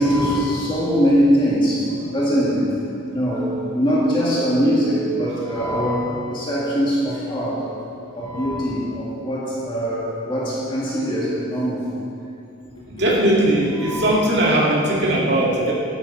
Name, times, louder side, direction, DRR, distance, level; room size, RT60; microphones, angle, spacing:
voice 1, 0.0-2.6 3.1-7.6 8.1-11.8 13.8-14.2, equal, 25° left, -7 dB, 2.3 m, -21 dB
voice 2, 12.9-15.7, right 1 dB, 55° right, -4 dB, 2.3 m, -19 dB
12.5 x 11.5 x 4.3 m, 2.5 s
head